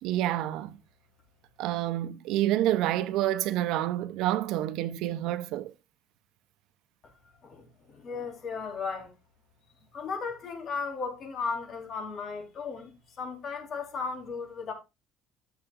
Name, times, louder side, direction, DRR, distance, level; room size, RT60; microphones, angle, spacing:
voice 1, 0.0-0.7 1.6-5.7, right 13 dB, 80° right, 0.7 m, -28 dB
voice 2, 7.4-9.1 9.9-14.7, left 5 dB, 40° left, 4.0 m, -36 dB
14.0 x 7.1 x 2.5 m
cardioid pair, 150°, 0 cm